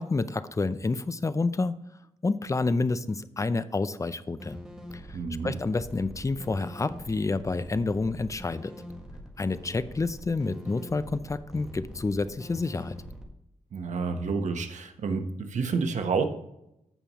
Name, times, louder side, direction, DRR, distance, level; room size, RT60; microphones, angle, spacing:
voice 1, 0.0-1.8 2.2-4.6 5.1-5.2 5.4-8.7 9.4-12.9, left 3 dB, 25° left, 13 dB, 0.5 m, -29 dB
sound 1, 4.4-13.2, equal, 5° right, 1.8 m, -43 dB
voice 2, 5.1-5.6 13.7-16.2, right 4 dB, 80° right, 6 dB, 1.1 m, -29 dB
15.0 x 5.5 x 3.0 m, 0.83 s
wide cardioid pair, 95°, 12 cm